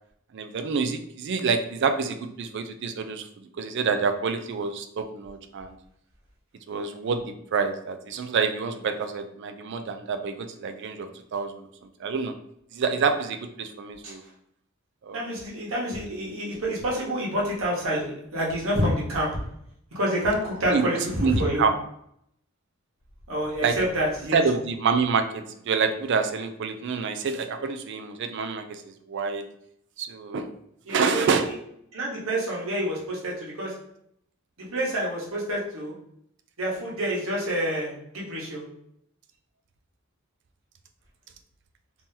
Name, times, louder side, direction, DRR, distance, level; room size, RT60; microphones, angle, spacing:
voice 1, 0.3-3.2 3.6-5.8 6.7-11.7 12.0-12.3 12.7-14.2 15.0-15.2 20.7-20.9 21.2-21.7 23.6-23.8 24.3-29.4 30.0-30.5 30.9-31.5, right 5 dB, 60° right, 8 dB, 0.4 m, -27 dB
voice 2, 15.1-19.3 19.9-21.6 23.3-24.4 30.9-31.5 31.9-33.7 34.6-35.9 36.6-38.6, equal, 90° right, -4 dB, 1.2 m, -28 dB
2.9 x 2.7 x 3.7 m, 0.73 s
head